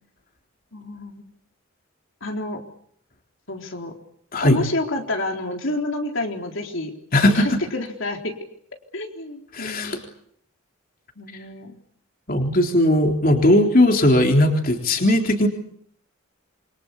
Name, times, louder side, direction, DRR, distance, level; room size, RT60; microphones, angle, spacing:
voice 1, 0.7-1.2 2.2-2.6 3.5-3.9 4.4-6.9 7.3-8.3 8.9-10.0 11.2-11.7, left 1 dB, 65° left, 2 dB, 3.9 m, -29 dB
voice 2, 7.1-7.6 9.5-10.0 12.3-15.5, left 1 dB, 45° left, 3 dB, 3.7 m, -18 dB
28.0 x 24.5 x 8.3 m, 0.68 s
head